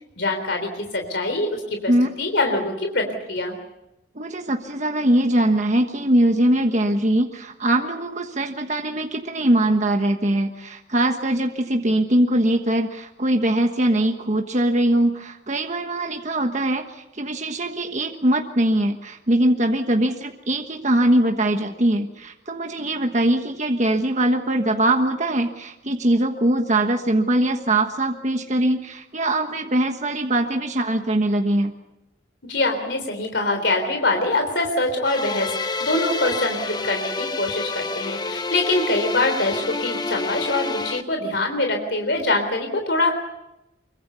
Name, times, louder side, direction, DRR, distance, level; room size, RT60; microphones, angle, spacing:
voice 1, 0.2-1.9 2.2-3.5 32.5-35.5 35.8-43.1, left 2 dB, 70° left, 4 dB, 3.7 m, -24 dB
voice 2, 4.1-31.7, right 1 dB, 40° right, 4 dB, 1.4 m, -21 dB
sound 1, 35.0-41.0, left 3 dB, 20° left, 1.1 m, -28 dB
25.0 x 23.5 x 7.0 m, 0.91 s
head